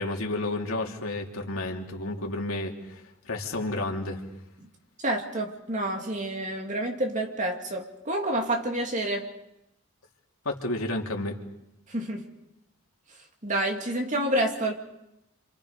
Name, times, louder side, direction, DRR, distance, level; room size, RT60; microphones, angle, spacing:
voice 1, 0.0-4.2 10.4-11.4, left 2 dB, 75° left, 3.1 m, -31 dB
voice 2, 5.0-9.3 11.9-12.3 13.4-14.7, right 1 dB, 35° right, 2.5 m, -28 dB
29.5 x 27.0 x 5.2 m
head